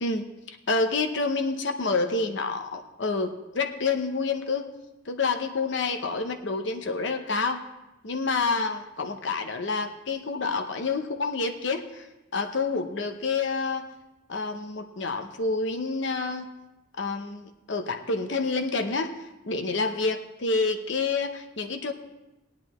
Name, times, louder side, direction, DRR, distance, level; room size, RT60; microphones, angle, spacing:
voice 1, 0.0-4.7 5.1-7.6 8.0-12.1 12.3-13.9 14.3-16.5 17.0-19.1 19.4-21.9, left 3 dB, 60° left, 6 dB, 0.7 m, -28 dB
17.0 x 10.5 x 3.1 m, 0.99 s
head